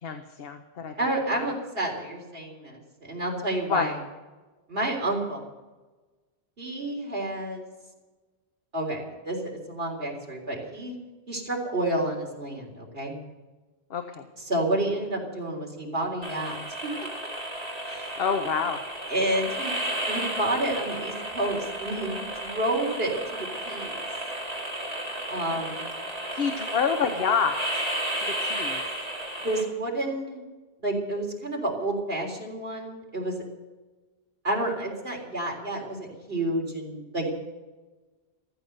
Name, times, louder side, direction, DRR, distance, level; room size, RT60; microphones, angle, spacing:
voice 1, 0.0-1.5 3.7-3.9 13.9-14.3 18.2-18.8 25.5-25.7 26.3-27.8 28.2-28.8, left 6 dB, 65° left, 6 dB, 1.2 m, -28 dB
voice 2, 1.0-3.9 4.7-5.4 6.6-7.7 8.7-11.0 11.3-13.1 14.4-16.6 16.8-17.1 17.8-18.2 19.1-23.4 23.7-24.0 25.3-25.9 29.4-30.4 30.8-33.4 34.4-37.4, right 1 dB, 70° right, -1 dB, 3.8 m, -30 dB
sound 1, 16.2-29.6, right 1 dB, 35° right, 2.9 m, -33 dB
14.5 x 14.5 x 6.7 m, 1.2 s
omnidirectional pair, 1.1 m